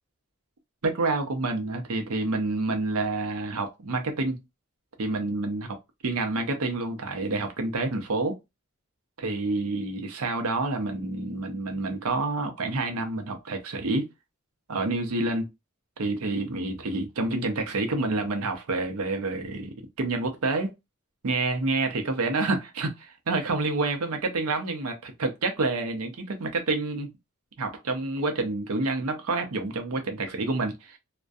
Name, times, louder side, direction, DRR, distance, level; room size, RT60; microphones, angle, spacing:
voice 1, 0.8-4.4 5.0-5.7 6.0-8.4 9.2-14.1 14.7-15.5 16.0-20.7 21.2-27.1 27.6-31.0, right 3 dB, 75° right, 0.6 m, -28 dB
2.3 x 2.1 x 2.5 m
head